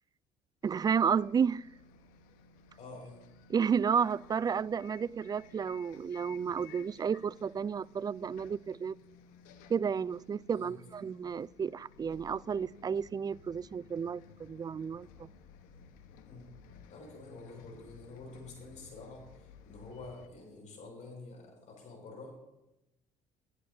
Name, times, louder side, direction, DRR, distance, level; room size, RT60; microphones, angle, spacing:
Bus, 0.6-20.3, left 5 dB, 80° left, 1.2 m, -56 dB
voice 1, 0.6-1.7 3.5-9.0 9.7-15.3, right 6 dB, 30° right, 0.3 m, -32 dB
voice 2, 2.8-3.2 10.5-10.8 16.2-16.5 16.9-22.6, left 3 dB, 60° left, 5.8 m, -48 dB
24.0 x 11.0 x 2.7 m
supercardioid pair, 70°, 14 cm